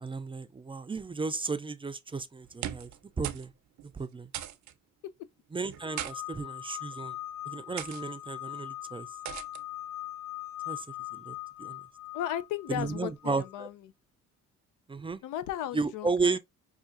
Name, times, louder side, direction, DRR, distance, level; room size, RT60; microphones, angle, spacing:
voice 1, 0.0-2.9 3.2-3.5 3.9-4.3 5.5-7.2 7.5-9.1 10.7-10.9 11.1-11.8 12.7-13.7 14.9-15.2 15.7-16.4, right 4 dB, 15° right, 0.4 m, -33 dB
sound 1, 2.4-3.0 3.2-3.5 3.8-3.9 4.3-4.7 5.7-6.1 6.9-7.1 7.8-8.0 9.3-9.6, right 12 dB, 70° right, 0.6 m, -38 dB
sound 2, 5.8-13.6, left 15 dB, 50° left, 0.8 m, -41 dB
voice 2, 12.1-13.9 15.2-16.4, left 11 dB, 90° left, 0.5 m, -35 dB
5.7 x 2.3 x 2.5 m
cardioid pair, 90°, 30 cm